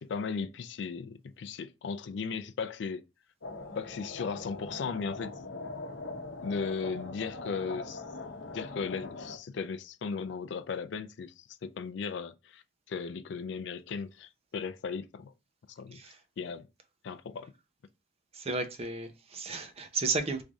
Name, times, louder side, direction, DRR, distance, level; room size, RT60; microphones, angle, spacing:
voice 1, 0.0-3.0 3.8-5.5 6.4-8.0 8.5-15.3 15.7-16.0 16.4-16.7 17.0-17.5, left 5 dB, 65° left, 0.3 m, -36 dB
sound 1, 3.4-9.4, left 2 dB, 85° left, 0.8 m, -41 dB
voice 2, 18.3-20.4, right 3 dB, 35° right, 0.5 m, -33 dB
3.2 x 2.6 x 3.5 m
head